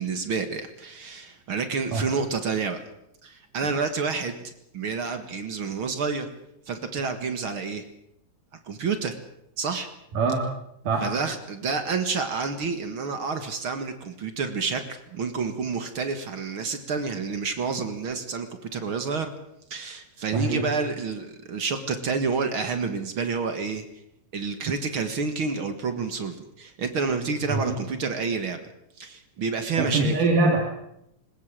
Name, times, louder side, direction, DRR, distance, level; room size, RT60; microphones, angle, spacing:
voice 1, 0.0-2.8 3.2-6.3 6.7-7.9 8.7-9.2 9.6-9.9 11.0-14.8 15.1-19.3 19.7-23.9 24.3-28.6 29.0-30.1, right 4 dB, 45° right, 8 dB, 2.0 m, -29 dB
voice 2, 20.3-20.7 27.5-27.8 29.8-30.6, right 3 dB, 70° right, 1 dB, 3.9 m, -23 dB
21.0 x 19.5 x 7.6 m, 0.80 s
omnidirectional pair, 3.9 m